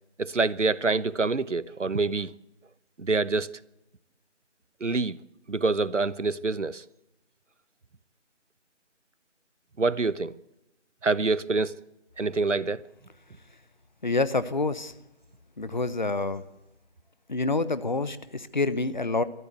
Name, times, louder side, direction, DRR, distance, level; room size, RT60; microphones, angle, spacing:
voice 1, 0.2-2.3 3.0-3.6 4.8-5.2 5.5-6.8 9.8-10.4 11.0-11.8 12.2-12.8, right 3 dB, 85° right, 1.1 m, -26 dB
voice 2, 14.0-14.9 15.6-16.4 17.3-19.2, left 3 dB, 40° left, 1.0 m, -27 dB
23.5 x 14.0 x 8.0 m
figure-of-eight pair, 165°, 35 cm